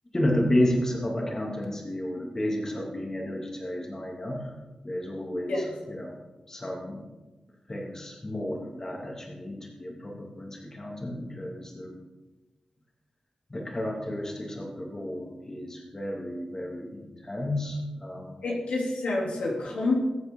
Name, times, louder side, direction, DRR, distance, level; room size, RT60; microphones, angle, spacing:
voice 1, 0.1-4.4 4.8-6.1 6.5-7.0 7.7-12.0 13.5-18.4, left 1 dB, 25° left, -1 dB, 2.7 m, -31 dB
voice 2, 18.4-20.0, left 2 dB, 85° left, -3 dB, 3.1 m, -28 dB
22.0 x 8.1 x 3.8 m, 1.2 s
wide cardioid pair, 90°, 2 cm